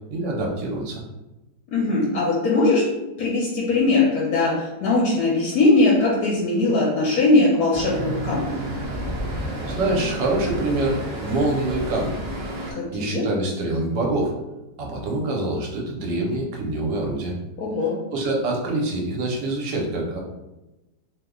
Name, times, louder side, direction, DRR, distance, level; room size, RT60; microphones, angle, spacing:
voice 1, 0.1-1.0 9.3-12.2 12.9-14.3 14.8-17.3 18.1-20.2, right 2 dB, 85° right, -1 dB, 1.4 m, -25 dB
voice 2, 1.7-2.9 3.2-8.6 12.7-13.3 17.6-18.0, left 2 dB, 65° left, -4 dB, 1.1 m, -20 dB
Traffic noise roadway noise, 7.7-12.7, equal, 55° right, 0.7 m, -30 dB
3.1 x 2.1 x 3.6 m, 1.0 s
omnidirectional pair, 1.8 m